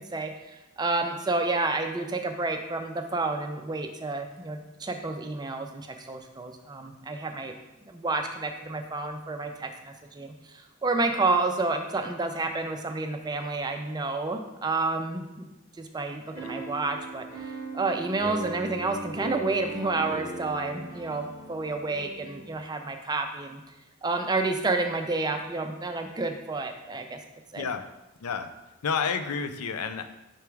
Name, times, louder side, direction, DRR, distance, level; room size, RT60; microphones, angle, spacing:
voice 1, 0.8-7.5 7.9-10.3 10.8-15.5 15.8-17.3 17.7-23.6 24.0-27.2 27.5-27.7, right 3 dB, 20° right, 5 dB, 0.4 m, -30 dB
sound 1, 16.3-22.5, right 4 dB, 45° left, 1.5 m, -39 dB
voice 2, 27.5-27.9 28.2-28.5 28.8-30.1, left 6 dB, 85° left, 9 dB, 0.5 m, -30 dB
6.0 x 3.5 x 4.6 m, 0.97 s
head